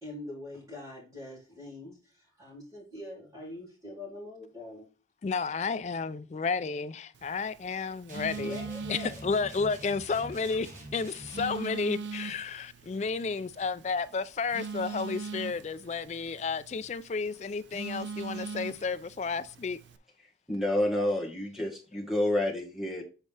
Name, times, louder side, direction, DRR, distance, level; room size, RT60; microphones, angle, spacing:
voice 1, 0.0-4.9 8.3-9.1 10.5-10.6, left 2 dB, 20° right, 2.5 m, -43 dB
voice 2, 5.2-8.6 8.9-10.7 10.9-19.8, left 4 dB, 40° left, 0.3 m, -32 dB
Telephone, 7.1-20.0, right 4 dB, 90° right, 0.5 m, -42 dB
sound 1, 8.1-11.6, right 1 dB, 45° right, 1.3 m, -45 dB
voice 3, 20.5-23.0, left 1 dB, ahead, 1.5 m, -29 dB
7.3 x 4.1 x 3.3 m
head